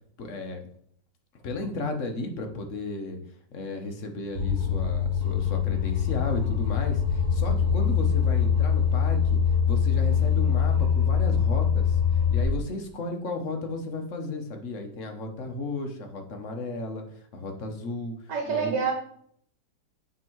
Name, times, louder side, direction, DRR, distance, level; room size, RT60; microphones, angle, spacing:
voice 1, 0.2-0.6 1.4-3.2 3.5-9.4 9.7-12.0 12.3-17.0 17.3-18.1 18.5-18.7, left 2 dB, 50° left, 4 dB, 1.2 m, -34 dB
sound 1, 4.3-12.4, left 7 dB, 35° right, 1.9 m, -23 dB
voice 2, 18.3-18.9, right 6 dB, 75° right, 1 dB, 1.9 m, -26 dB
9.0 x 3.7 x 4.6 m, 0.63 s
omnidirectional pair, 1.9 m